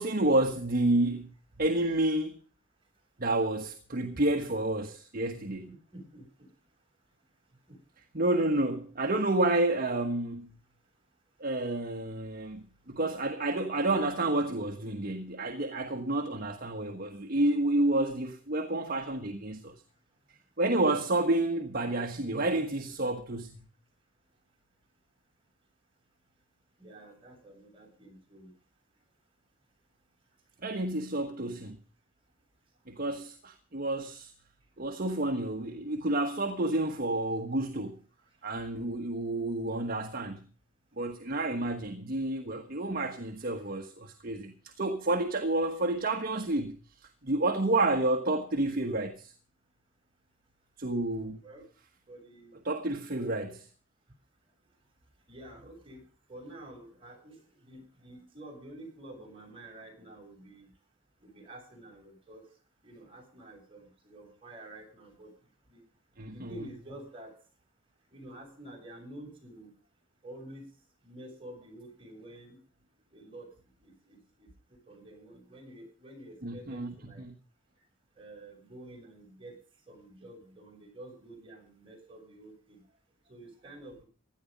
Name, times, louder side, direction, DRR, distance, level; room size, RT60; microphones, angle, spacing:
voice 1, 0.0-2.4 3.2-5.7 8.1-10.6 11.4-19.7 20.6-23.7 30.6-31.8 32.9-34.3 34.8-38.0 38.4-40.4 41.0-49.3 50.8-51.4 52.6-53.7 66.2-66.5 76.4-77.3, right 2 dB, 50° right, 1.4 m, -30 dB
voice 2, 5.6-6.5 7.7-7.8 26.8-28.5 51.4-51.6 52.1-52.6 55.3-56.0 56.3-60.7 61.2-62.5 62.8-65.3 65.7-65.8 66.3-67.3 68.1-69.7 70.2-70.6 71.0-72.6 73.1-73.5 73.8-77.2 78.2-79.6 79.9-82.8 83.3-84.0, right 1 dB, 25° right, 7.4 m, -49 dB
16.5 x 11.5 x 5.3 m
head